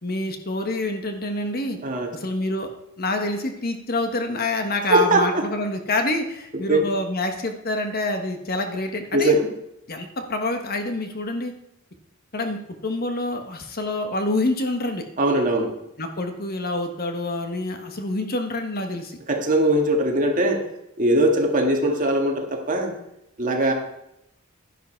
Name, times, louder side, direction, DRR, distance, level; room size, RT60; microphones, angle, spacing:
voice 1, 0.0-1.8 2.1-2.7 3.0-9.3 9.9-11.5 12.3-15.0 16.0-19.2, left 2 dB, 45° left, 5 dB, 1.3 m, -27 dB
voice 2, 1.8-2.1 4.9-5.5 6.5-6.9 9.1-9.5 15.2-15.7 19.3-20.7 21.0-22.9 23.4-23.7, right 1 dB, 40° right, 2 dB, 1.9 m, -20 dB
11.5 x 10.5 x 4.5 m, 0.82 s
head